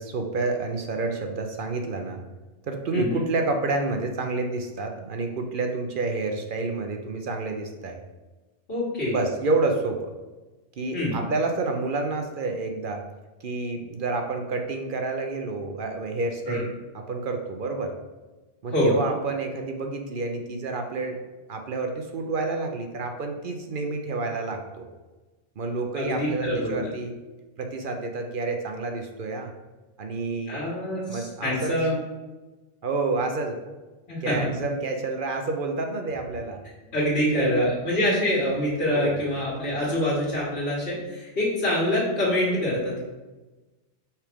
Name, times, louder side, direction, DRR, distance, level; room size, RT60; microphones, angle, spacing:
voice 1, 0.0-2.2 2.6-8.0 9.1-10.1 10.8-13.0 13.4-17.9 18.6-21.2 21.5-24.9 25.6-27.1 27.6-29.5 30.0-30.6 31.1-31.7 32.8-33.7 34.2-36.6 37.3-37.7 38.9-39.2, right 3 dB, 55° right, 4 dB, 0.7 m, -29 dB
voice 2, 8.7-9.2 10.9-11.2 16.5-16.6 18.7-19.0 26.0-26.9 30.5-32.0 34.1-34.5 36.9-43.0, left 1 dB, 55° left, -7 dB, 1.8 m, -25 dB
5.7 x 4.8 x 3.5 m, 1.2 s
omnidirectional pair, 1.2 m